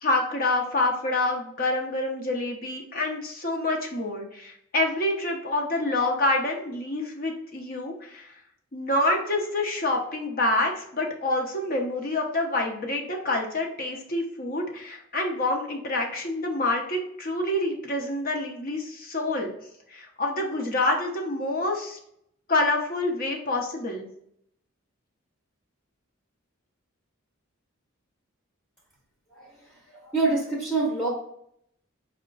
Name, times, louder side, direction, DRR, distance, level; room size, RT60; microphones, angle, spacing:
voice 1, 0.0-8.3 8.7-19.5 19.9-22.0 22.5-24.1, left 2 dB, 45° left, 1 dB, 0.8 m, -27 dB
voice 2, 29.3-31.1, right 3 dB, 10° left, -5 dB, 0.8 m, -27 dB
5.4 x 2.2 x 3.8 m, 0.72 s
head